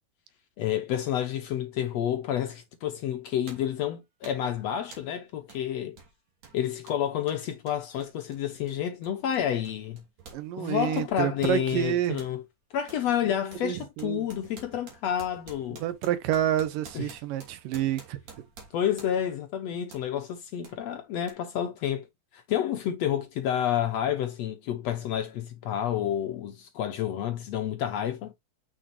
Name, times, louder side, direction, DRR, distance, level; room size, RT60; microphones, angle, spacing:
voice 1, 0.6-6.0 6.5-10.0 10.6-12.4 12.7-15.8 16.9-17.1 18.7-22.1 22.3-28.3, left 10 dB, 70° left, 1.7 m, -29 dB
sound 1, 2.6-2.7 3.5-3.8 4.2-4.5 4.9-5.2 5.5-5.7 5.9-10.5 10.7-12.4 12.9-13.1 13.5-19.4 19.9-20.1 20.6-20.8 21.3-21.4, right 5 dB, 55° right, 4.0 m, -50 dB
voice 2, 10.3-12.2 13.6-14.2 15.8-18.2, right 11 dB, 85° right, 2.6 m, -28 dB
7.0 x 6.2 x 2.9 m
omnidirectional pair, 3.8 m